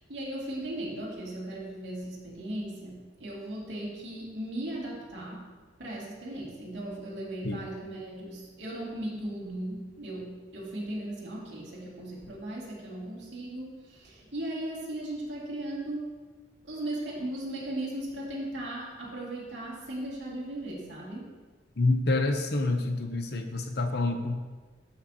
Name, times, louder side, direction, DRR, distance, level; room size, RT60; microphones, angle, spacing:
voice 1, 0.0-5.5 5.8-16.1 16.6-21.4, right 1 dB, 85° right, -6 dB, 2.4 m, -37 dB
voice 2, 21.8-24.4, left 2 dB, 65° left, 6 dB, 0.8 m, -27 dB
12.0 x 5.7 x 2.8 m, 1.3 s
head